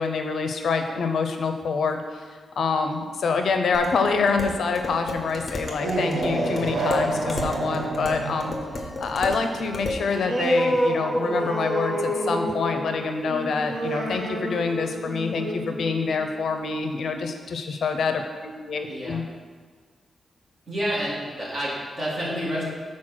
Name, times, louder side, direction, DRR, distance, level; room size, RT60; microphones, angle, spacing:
voice 1, 0.0-2.2 2.6-8.5 9.0-19.2, left 4 dB, 65° left, 6 dB, 0.5 m, -26 dB
Dishes pots and pans, 3.7-10.1, left 2 dB, 25° left, 0.8 m, -34 dB
sound 1, 5.5-16.8, right 1 dB, 55° right, 1.5 m, -28 dB
voice 2, 18.9-19.2 20.7-22.6, equal, 30° right, -6 dB, 2.0 m, -29 dB
6.2 x 4.2 x 6.1 m, 1.5 s
wide cardioid pair, 175°, 0 cm